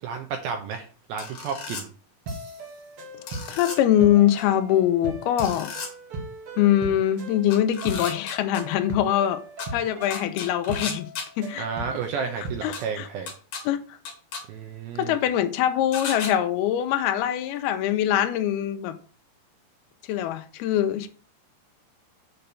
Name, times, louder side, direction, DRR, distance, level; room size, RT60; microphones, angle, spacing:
voice 1, 0.0-1.9 11.6-13.3 14.5-15.2, right 6 dB, 75° right, 2.4 m, -32 dB
sound 1, 1.2-1.8 3.3-3.8 5.4-5.9 7.5-8.6 9.6-9.7 10.1-11.3 12.7-12.8 13.3-13.6 14.1-14.4 15.9-16.3, left 5 dB, 50° left, 2.7 m, -34 dB
sound 2, 2.3-13.0, right 1 dB, 55° right, 1.6 m, -38 dB
voice 2, 3.5-5.7 6.6-9.4 9.7-11.1 11.4-11.7 12.6-13.1 13.7-13.8 15.0-19.0 20.1-21.1, left 11 dB, 75° left, 2.5 m, -23 dB
7.0 x 4.5 x 6.6 m
omnidirectional pair, 4.9 m